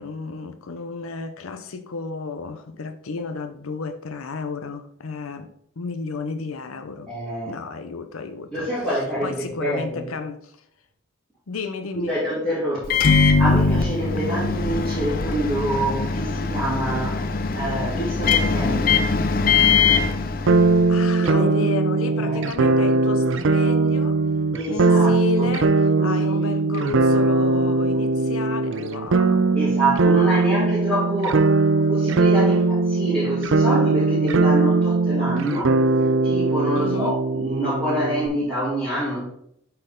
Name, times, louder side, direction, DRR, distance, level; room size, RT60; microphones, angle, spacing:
voice 1, 0.0-5.5 5.8-7.1 7.5-8.9 9.2-10.6 11.5-12.1 20.9-24.2 24.7-29.6 30.1-30.7 36.7-37.2, left 4 dB, 85° left, 0.7 m, -32 dB
voice 2, 7.1-7.5 8.5-10.1 12.1-19.0 20.1-20.2 21.2-21.6 22.1-22.4 24.5-25.5 26.0-26.5 29.5-35.7 36.0-39.2, right 1 dB, ahead, 2.7 m, -27 dB
Microwave oven, 12.8-21.0, left 4 dB, 45° left, 0.5 m, -21 dB
sound 1, 20.5-38.3, right 3 dB, 65° right, 0.5 m, -20 dB
7.9 x 4.4 x 3.8 m
head